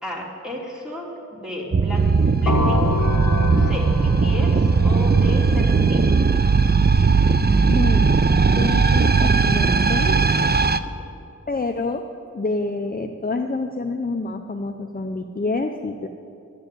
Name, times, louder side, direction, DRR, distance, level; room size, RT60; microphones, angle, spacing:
voice 1, 0.0-2.9 3.6-6.1 10.6-10.9, left 1 dB, ahead, -3 dB, 3.0 m, -33 dB
sound 1, 1.7-10.8, right 4 dB, 35° right, 0.5 m, -18 dB
sound 2, 2.5-6.2, left 3 dB, 80° left, 0.7 m, -27 dB
voice 2, 7.7-8.2 8.5-10.2 11.5-12.0 12.3-16.1, left 3 dB, 30° left, 5 dB, 0.6 m, -27 dB
12.0 x 7.7 x 9.1 m, 2.5 s
wide cardioid pair, 50°, 30 cm